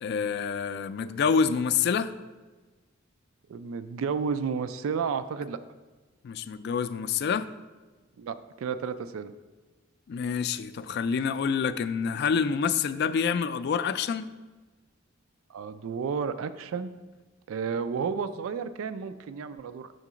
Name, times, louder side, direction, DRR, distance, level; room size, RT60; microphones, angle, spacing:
voice 1, 0.0-2.1 6.2-7.5 10.1-14.3, left 6 dB, 55° left, 0.3 m, -27 dB
voice 2, 3.5-5.6 8.2-9.3 15.5-16.9 17.5-19.9, right 6 dB, 90° right, 0.3 m, -32 dB
6.5 x 3.7 x 6.1 m
head